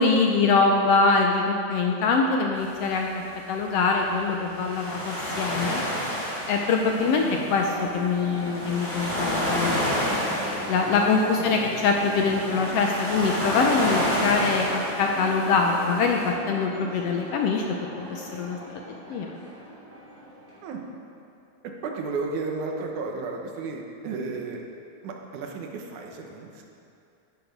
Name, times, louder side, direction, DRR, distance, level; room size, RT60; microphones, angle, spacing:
voice 1, 0.0-3.1 3.5-5.8 6.5-10.3 10.7-18.6 18.9-19.3, left 4 dB, 70° left, 1 dB, 1.5 m, -24 dB
sound 1, 2.6-16.3, equal, 25° left, 3.3 m, -30 dB
sound 2, 6.8-20.6, right 1 dB, 55° right, 4.6 m, -39 dB
voice 2, 7.0-7.5 11.4-11.7 20.6-20.8 21.6-24.6 25.0-26.7, right 4 dB, 85° right, 2 dB, 2.6 m, -33 dB
10.5 x 10.5 x 5.3 m, 2.6 s
omnidirectional pair, 3.4 m